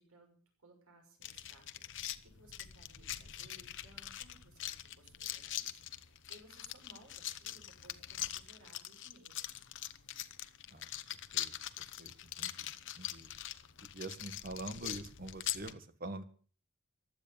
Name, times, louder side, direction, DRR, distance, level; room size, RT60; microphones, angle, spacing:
voice 1, 0.0-9.6, right 1 dB, 80° right, 2 dB, 6.2 m, -62 dB
sound 1, 1.2-15.7, left 12 dB, 60° left, 1.1 m, -43 dB
voice 2, 12.0-13.3 13.9-16.2, right 2 dB, 45° right, 10 dB, 1.7 m, -45 dB
16.0 x 11.5 x 7.1 m, 0.43 s
head